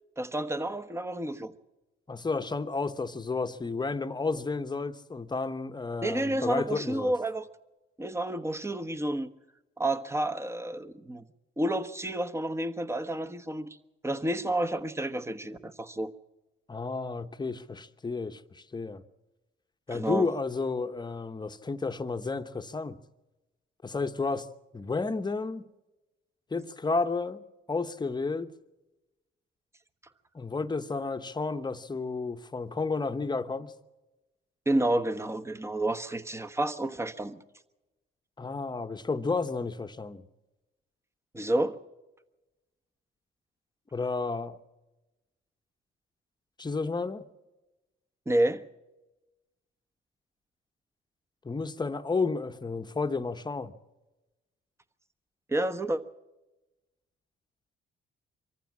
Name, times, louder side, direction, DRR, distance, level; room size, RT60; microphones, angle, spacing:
voice 1, 0.2-1.5 6.0-7.5 8.0-9.3 9.8-11.2 11.6-13.7 14.0-16.1 19.9-20.3 34.7-37.4 41.3-41.8 48.3-48.6 55.5-56.0, right 1 dB, 15° right, 1.2 m, -30 dB
voice 2, 2.1-7.1 16.7-19.0 19.9-23.0 23.8-24.5 24.7-25.6 26.5-27.4 27.7-28.5 30.3-33.7 38.4-40.3 43.9-44.6 46.6-47.2 51.4-53.7, left 4 dB, 20° left, 1.0 m, -32 dB
24.5 x 14.5 x 7.4 m
cardioid pair, 90°, 20 cm